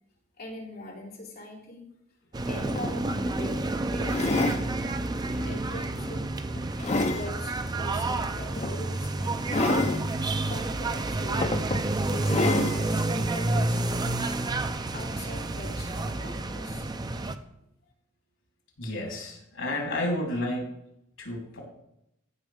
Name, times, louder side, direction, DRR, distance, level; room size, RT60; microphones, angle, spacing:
voice 1, 0.4-1.8 2.5-4.8 5.4-6.3 6.8-9.9 10.5-11.5 12.1-14.3 14.9-16.9, left 2 dB, 55° left, -5 dB, 3.0 m, -42 dB
sound 1, 2.3-17.4, right 2 dB, 20° right, 0.4 m, -29 dB
sound 2, 2.4-2.5 2.8-3.0 4.0-4.6 5.3-5.5 6.1-7.3 8.6-8.7 9.5-10.0 10.9-11.0 11.4-11.8 12.2-12.8 13.6-13.7, left 2 dB, 35° left, 0.6 m, -27 dB
voice 2, 18.8-20.7 21.2-21.6, left 1 dB, 80° left, -1 dB, 3.6 m, -31 dB
14.5 x 5.6 x 3.6 m, 0.79 s
head